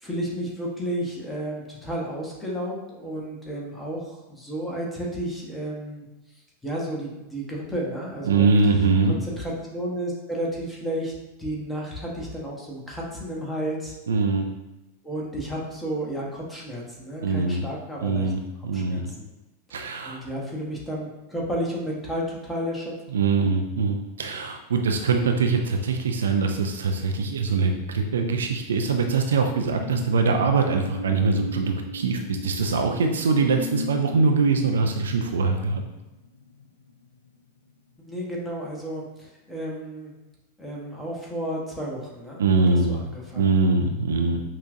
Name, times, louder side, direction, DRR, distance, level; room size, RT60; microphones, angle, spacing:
voice 1, 0.0-6.1 6.6-8.5 9.0-11.1 11.4-13.9 15.0-18.3 18.7-19.3 19.7-19.8 20.0-22.9 38.1-40.1 40.6-43.5, equal, 5° left, -3 dB, 1.0 m, -32 dB
voice 2, 8.3-9.2 14.1-14.5 17.2-17.6 18.0-19.1 19.7-20.2 23.1-35.8 42.4-43.0 43.4-44.4, right 4 dB, 65° right, 4 dB, 0.3 m, -23 dB
sound 1, 29.5-37.7 38.1-38.3, left 1 dB, 80° left, 0.3 m, -38 dB
5.6 x 2.4 x 2.5 m, 1.0 s
figure-of-eight pair, 90°, 0 cm